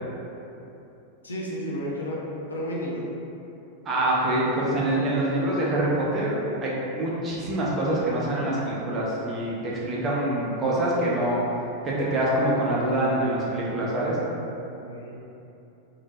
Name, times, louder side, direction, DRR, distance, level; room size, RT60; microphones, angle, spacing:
voice 1, 1.2-2.2 2.5-3.0 14.8-15.1, equal, 75° left, -5 dB, 0.5 m, -32 dB
voice 2, 3.9-11.4 11.8-14.2, right 1 dB, 25° right, -5 dB, 0.7 m, -25 dB
3.6 x 2.7 x 2.4 m, 2.9 s
figure-of-eight pair, 90°, 0 cm